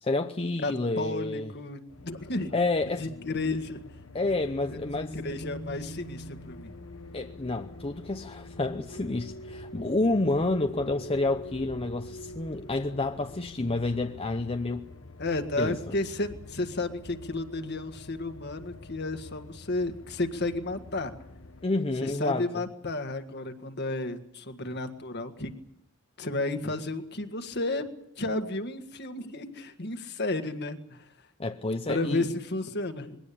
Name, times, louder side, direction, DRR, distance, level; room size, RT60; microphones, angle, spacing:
voice 1, 0.0-1.5 2.5-3.1 4.1-5.2 7.1-14.8 15.6-15.7 21.6-22.5 31.4-32.3, left 2 dB, 25° left, 0.7 m, -29 dB
voice 2, 0.6-2.5 3.0-3.8 4.7-6.7 15.2-21.1 22.0-25.5 26.2-27.8 28.2-31.0 31.9-33.2, left 2 dB, 50° left, 1.7 m, -32 dB
sound 1, 1.9-21.7, left 1 dB, 70° left, 1.3 m, -45 dB
22.0 x 17.5 x 8.6 m
head